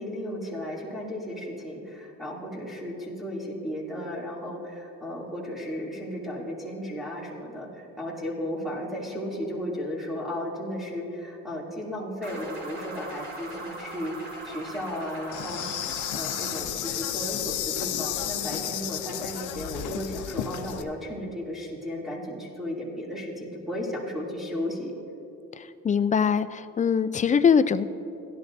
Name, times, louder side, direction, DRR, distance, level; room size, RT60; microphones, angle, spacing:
voice 1, 0.0-15.6 16.1-24.9, equal, ahead, -7 dB, 2.7 m, -34 dB
sound 1, 12.2-16.6, right 1 dB, 45° right, 2.7 m, -40 dB
Insect, 15.3-20.8, left 11 dB, 85° left, 0.6 m, -32 dB
voice 2, 25.5-27.8, left 6 dB, 25° left, 13 dB, 0.4 m, -22 dB
16.5 x 11.5 x 2.6 m, 2.8 s
cardioid pair, 90°, 30 cm